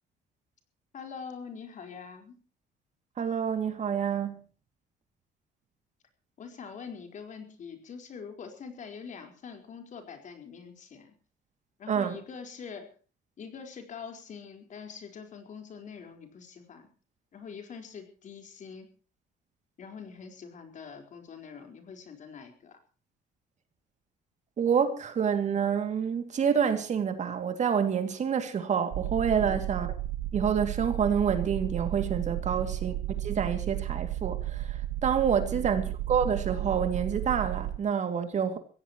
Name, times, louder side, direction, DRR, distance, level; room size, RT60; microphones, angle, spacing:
voice 1, 0.9-2.4 6.4-11.1 11.8-12.9 13.4-16.9 17.3-18.9 19.8-22.8 29.3-29.6 32.4-32.7 35.3-35.7, left 6 dB, 45° left, 4.6 m, -44 dB
voice 2, 3.2-4.4 11.9-12.2 24.6-29.9 30.3-38.6, right 7 dB, 45° right, 2.6 m, -28 dB
sound 1, 28.9-37.8, right 14 dB, 65° right, 1.0 m, -33 dB
24.0 x 16.0 x 3.1 m
cardioid pair, 110°, 17 cm